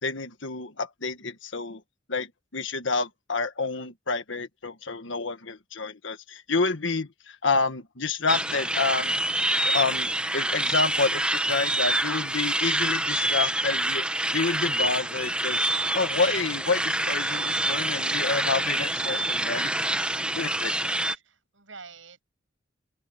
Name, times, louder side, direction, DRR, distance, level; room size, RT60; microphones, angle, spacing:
voice 1, 0.0-1.8 2.1-9.1 9.6-15.7 15.9-19.7 20.4-20.9, left 4 dB, 75° left, 1.6 m, -29 dB
sound 1, 8.3-21.2, right 1 dB, 5° right, 1.0 m, -26 dB
voice 2, 21.1-22.2, right 4 dB, 80° right, 7.7 m, -48 dB
open air
head